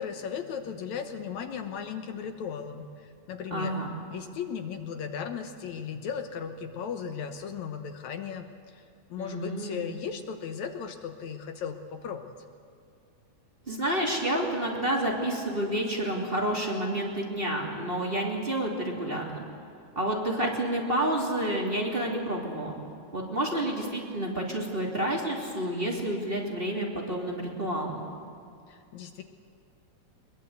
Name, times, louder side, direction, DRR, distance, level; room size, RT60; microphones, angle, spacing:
voice 1, 0.0-3.7 4.1-8.8 9.1-12.3 28.7-29.2, left 7 dB, 70° left, 7 dB, 2.3 m, -36 dB
voice 2, 3.5-3.9 9.2-9.8 13.7-19.4 19.9-22.7 23.1-28.0, right 1 dB, 20° right, -2 dB, 3.0 m, -29 dB
22.5 x 22.0 x 8.1 m, 2.4 s
omnidirectional pair, 3.5 m